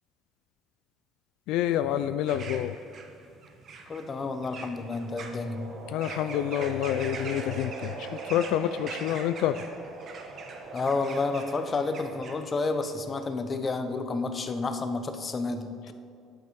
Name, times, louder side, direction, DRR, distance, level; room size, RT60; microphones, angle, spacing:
voice 1, 1.5-2.7 5.9-9.6, left 11 dB, 75° left, 11 dB, 0.3 m, -28 dB
sound 1, 2.3-12.9, right 4 dB, 40° right, 1.1 m, -44 dB
voice 2, 3.9-5.7 10.7-15.9, left 3 dB, 25° left, 8 dB, 0.7 m, -30 dB
sound 2, 4.8-12.6, right 4 dB, 75° right, 2.5 m, -42 dB
10.0 x 8.2 x 4.6 m, 2.5 s
cardioid pair, 140°, 0 cm